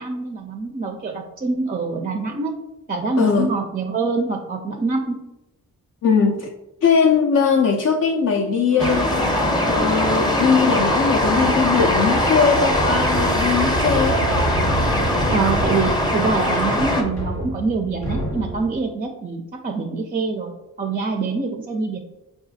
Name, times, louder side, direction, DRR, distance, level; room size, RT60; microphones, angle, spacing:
voice 1, 0.0-2.5 2.9-5.2 15.3-20.5 20.8-22.0, right 4 dB, 25° right, 2 dB, 0.4 m, -25 dB
voice 2, 3.2-3.5 6.0-6.5 6.8-9.1 9.6-14.2, left 6 dB, 45° left, 1 dB, 0.4 m, -19 dB
sound 1, 8.7-11.9, left 2 dB, 65° left, 0.8 m, -37 dB
sound 2, 8.8-17.0, left 1 dB, 10° left, 0.7 m, -21 dB
sound 3, 11.1-18.8, right 1 dB, 85° left, 1.3 m, -28 dB
4.7 x 2.4 x 2.6 m, 0.97 s
supercardioid pair, 45°, 38 cm